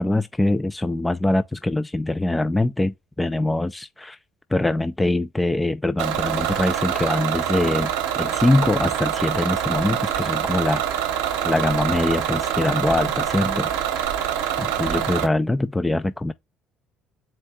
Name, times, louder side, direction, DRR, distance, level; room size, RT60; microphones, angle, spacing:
voice 1, 0.0-4.2 4.5-7.9 8.2-10.8 11.4-13.7 14.6-16.3, left 2 dB, 15° left, 0.4 m, -23 dB
Bus / Engine, 6.0-15.3, right 10 dB, 75° right, 0.8 m, -25 dB
4.3 x 2.6 x 3.4 m
hypercardioid pair, 55°, 0 cm